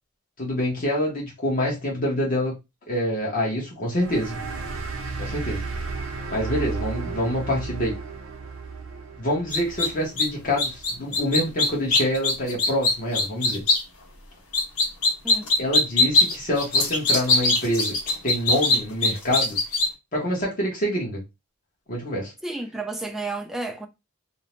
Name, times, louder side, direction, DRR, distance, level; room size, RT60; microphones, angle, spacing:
voice 1, 0.4-2.6 2.9-4.4 5.2-5.6 6.3-7.9 9.2-13.6 15.6-17.9 18.2-19.6 20.1-21.2 21.9-22.3, equal, 40° left, 0.9 m, -26 dB
sound 1, 3.9-11.0, right 4 dB, 70° right, 0.6 m, -34 dB
sound 2, 9.5-9.9 10.2-10.3 10.6-13.8 14.5-19.9, left 2 dB, 70° left, 0.9 m, -21 dB
voice 2, 22.4-23.9, right 2 dB, ahead, 0.3 m, -31 dB
2.6 x 2.0 x 3.0 m
head